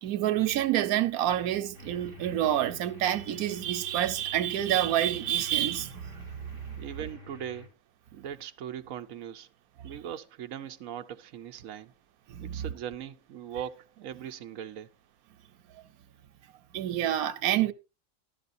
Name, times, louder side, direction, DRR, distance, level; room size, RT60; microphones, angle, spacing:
voice 1, 0.0-6.6 12.3-12.6 16.7-17.7, right 12 dB, 90° right, 1.2 m, -28 dB
sound 1, 1.7-7.7, left 4 dB, 40° left, 3.8 m, -50 dB
voice 2, 6.8-7.7 8.1-9.5 9.8-11.9 12.4-14.9, right 9 dB, 70° right, 1.1 m, -40 dB
13.0 x 12.0 x 2.6 m
omnidirectional pair, 1.5 m